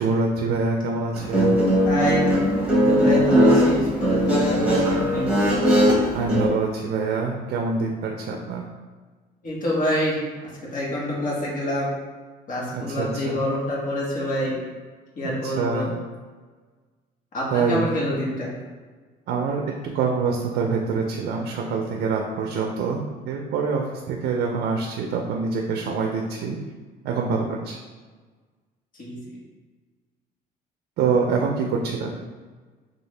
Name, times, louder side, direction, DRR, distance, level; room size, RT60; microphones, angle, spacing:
voice 1, 0.0-1.6 6.1-8.6 12.7-13.4 15.2-16.0 17.5-17.8 19.3-26.6 27.0-27.8 31.0-32.2, right 4 dB, 70° right, 1 dB, 0.5 m, -25 dB
Guitar, 1.1-6.5, equal, 5° right, 1.1 m, -19 dB
voice 2, 1.8-2.3 2.7-5.3 9.4-10.2 10.4-11.9 12.5-14.6 15.1-15.9 17.3-18.5 29.0-29.2, left 1 dB, 50° left, -6 dB, 1.4 m, -26 dB
3.6 x 2.5 x 3.2 m, 1.4 s
cardioid pair, 110°, 17 cm